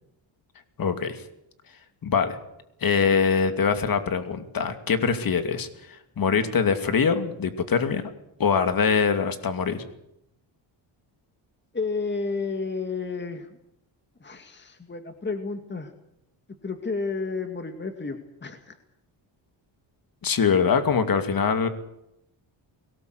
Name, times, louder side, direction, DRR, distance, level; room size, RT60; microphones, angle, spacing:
voice 1, 0.8-1.2 2.0-2.4 2.8-8.1 8.4-9.9 20.2-21.7, left 6 dB, 45° left, 9 dB, 2.7 m, -23 dB
voice 2, 11.7-13.6 14.2-15.9 16.6-18.7, left 4 dB, 20° left, 7 dB, 2.2 m, -31 dB
22.0 x 18.5 x 8.1 m, 0.83 s
cardioid pair, 100°, 47 cm